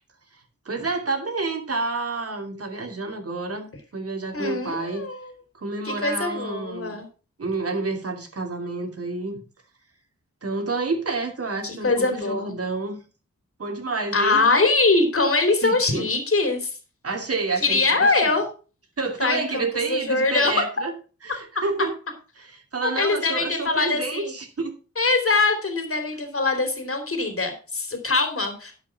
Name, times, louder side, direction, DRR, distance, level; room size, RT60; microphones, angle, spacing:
voice 1, 0.6-5.0 5.5-7.0 7.4-9.4 10.4-13.0 13.6-14.4 15.6-16.1 17.0-18.1 19.0-20.9 21.2-21.9 22.4-24.8, right 3 dB, 55° right, 3 dB, 2.8 m, -29 dB
voice 2, 4.3-5.3 5.8-7.0 11.6-12.5 14.1-16.7 17.6-18.5 19.2-20.5 22.8-24.3 25.0-28.7, left 3 dB, 50° left, 6 dB, 3.1 m, -23 dB
11.0 x 5.9 x 5.9 m, 0.35 s
cardioid pair, 70°, 29 cm